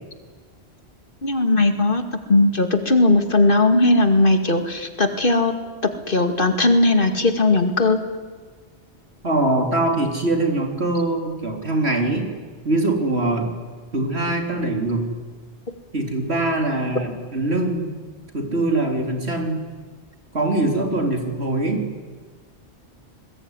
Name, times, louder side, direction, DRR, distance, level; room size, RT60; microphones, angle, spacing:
voice 1, 1.2-2.0 2.3-5.5 6.1-8.0, left 2 dB, 50° left, 7 dB, 2.4 m, -18 dB
voice 2, 9.2-12.3 12.6-13.5 13.9-15.0 15.9-18.0 18.3-19.6 20.3-21.9, right 2 dB, 70° right, 3 dB, 4.0 m, -22 dB
29.0 x 20.5 x 9.8 m, 1.5 s
omnidirectional pair, 1.1 m